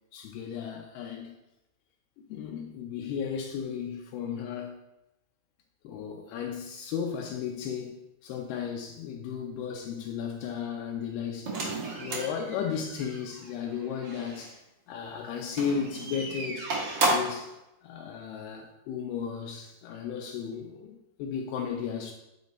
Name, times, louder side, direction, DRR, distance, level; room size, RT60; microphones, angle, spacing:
voice 1, 0.1-1.4 2.3-4.8 5.8-8.0 8.2-11.5 12.0-16.8 17.0-17.5 17.8-22.1, left 7 dB, 80° left, 2 dB, 2.4 m, -35 dB
sound 1, 11.4-14.5 15.5-17.5, right 2 dB, 85° right, 1.2 m, -32 dB
9.3 x 4.2 x 4.4 m, 0.90 s
omnidirectional pair, 4.9 m